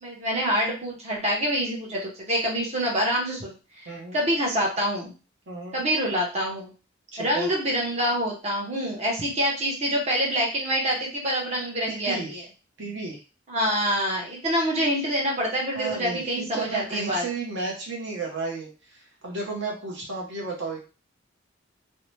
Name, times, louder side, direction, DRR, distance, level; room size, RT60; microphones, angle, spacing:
voice 1, 0.0-5.1 5.7-6.7 7.2-12.4 13.5-17.2, equal, 35° right, -2 dB, 0.8 m, -26 dB
voice 2, 3.9-4.2 5.5-5.8 7.1-7.5 11.9-12.4 12.8-13.2 15.7-20.8, right 3 dB, 65° right, -1 dB, 0.8 m, -33 dB
2.7 x 2.1 x 3.1 m, 0.33 s
head